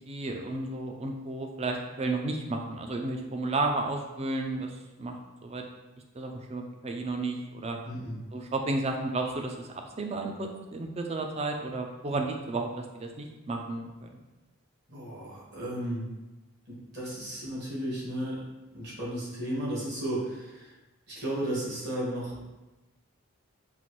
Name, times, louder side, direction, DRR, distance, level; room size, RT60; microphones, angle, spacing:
voice 1, 0.1-5.2 5.4-5.6 6.1-7.8 8.3-9.7 10.0-14.1, right 2 dB, 30° right, 2 dB, 0.4 m, -32 dB
voice 2, 7.8-8.1 14.9-16.1 16.7-18.4 18.7-20.7 21.1-22.4, right 1 dB, 50° right, -6 dB, 1.5 m, -34 dB
5.5 x 2.5 x 3.0 m, 1.1 s
head